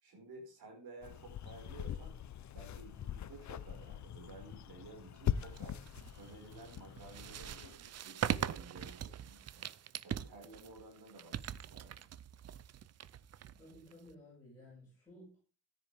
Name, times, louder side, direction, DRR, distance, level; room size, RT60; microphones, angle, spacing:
voice 1, 0.0-2.2 2.5-5.8 6.2-9.6 10.0-12.1, right 2 dB, 60° right, 2 dB, 5.3 m, -54 dB
sound 1, 1.0-7.7, left 10 dB, 45° left, 0.6 m, -42 dB
sound 2, 5.5-14.1, right 10 dB, 40° right, 0.5 m, -42 dB
voice 2, 13.6-15.4, left 1 dB, 10° left, -8 dB, 6.6 m, -56 dB
14.5 x 10.0 x 3.5 m, 0.34 s
wide cardioid pair, 180°, 41 cm